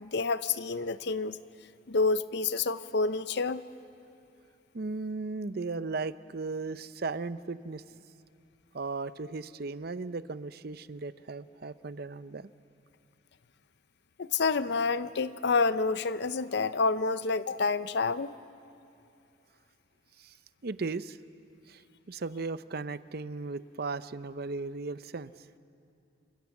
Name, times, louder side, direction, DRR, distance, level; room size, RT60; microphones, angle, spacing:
voice 1, 0.0-1.4 1.9-3.6 14.2-18.3, left 4 dB, 60° left, 14 dB, 0.6 m, -28 dB
voice 2, 4.7-7.8 8.7-12.5 20.2-20.4 20.6-21.2 21.7-21.8 22.1-25.5, right 3 dB, 50° right, 14 dB, 0.6 m, -36 dB
27.5 x 25.5 x 7.2 m, 2.7 s
head